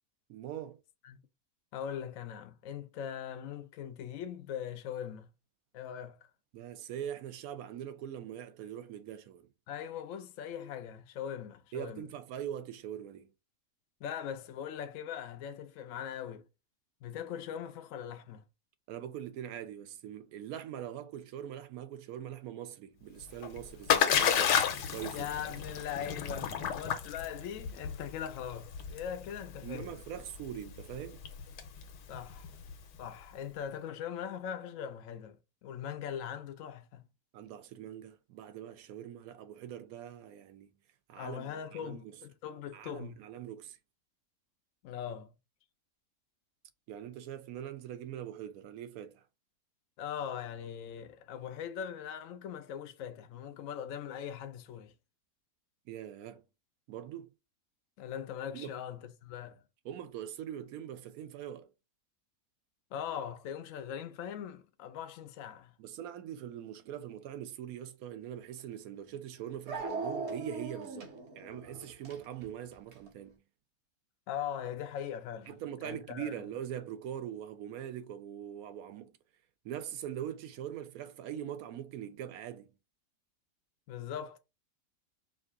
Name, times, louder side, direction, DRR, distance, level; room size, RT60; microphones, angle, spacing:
voice 1, 0.3-0.8 6.5-9.5 11.7-13.3 18.9-24.6 24.9-25.6 29.6-31.2 37.3-40.7 41.1-42.2 42.7-43.8 46.9-49.2 55.9-56.4 56.9-57.3 58.5-58.7 59.8-61.7 65.8-73.4 75.5-79.1 79.6-82.7, right 10 dB, 70° right, 1.0 m, -42 dB
voice 2, 1.7-5.3 5.7-6.2 9.7-12.0 14.0-16.4 17.0-18.4 25.1-29.9 32.1-32.5 33.0-37.0 41.1-43.2 44.8-45.3 50.0-54.9 58.0-59.6 62.9-65.7 74.3-75.5 75.8-76.3 83.9-84.4, left 9 dB, 70° left, 0.8 m, -40 dB
Splash splatter, 23.2-33.0, left 8 dB, 85° left, 1.4 m, -32 dB
Dog, 68.6-68.7 69.7-73.1, right 4 dB, 45° right, 1.3 m, -40 dB
4.8 x 2.5 x 3.5 m
omnidirectional pair, 1.8 m